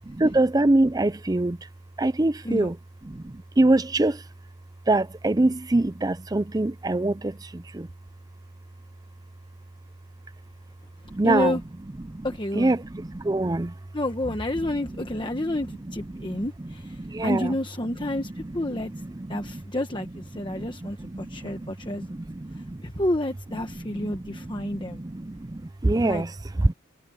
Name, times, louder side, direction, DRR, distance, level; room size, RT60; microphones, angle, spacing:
voice 1, 0.2-1.7 2.0-2.8 3.0-4.3 4.9-7.9 11.0-11.6 12.0-12.3 12.5-13.8 14.6-14.7 15.3-16.7 17.0-17.6 18.1-19.6 20.4-22.8 23.6-26.7, right 2 dB, 15° right, 0.4 m, -26 dB
voice 2, 11.2-11.6 12.2-12.7 13.9-18.9 19.3-22.1 22.6-25.0 26.0-26.2, left 1 dB, 20° left, 1.2 m, -29 dB
head